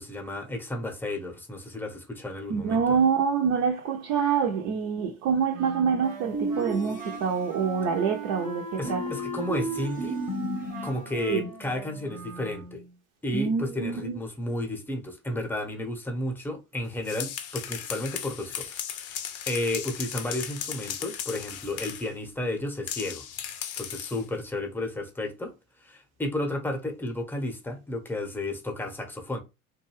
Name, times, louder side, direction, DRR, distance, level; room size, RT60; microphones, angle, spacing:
voice 1, 0.0-3.0 8.8-10.2 10.8-12.8 13.2-23.2 23.8-25.5 25.8-29.4, left 1 dB, 5° left, 0.8 m, -32 dB
voice 2, 2.5-9.0 11.3-11.5 13.3-14.2, right 6 dB, 50° right, 0.6 m, -26 dB
Wind instrument woodwind instrument, 5.5-12.9, right 1 dB, 85° right, 1.1 m, -40 dB
sound 1, 6.3-7.6 8.8-11.0, right 2 dB, 80° left, 0.8 m, -33 dB
sound 2, 16.9-22.1 22.9-24.3, left 9 dB, 40° left, 0.6 m, -36 dB
2.6 x 2.3 x 3.0 m
hypercardioid pair, 75°, 39 cm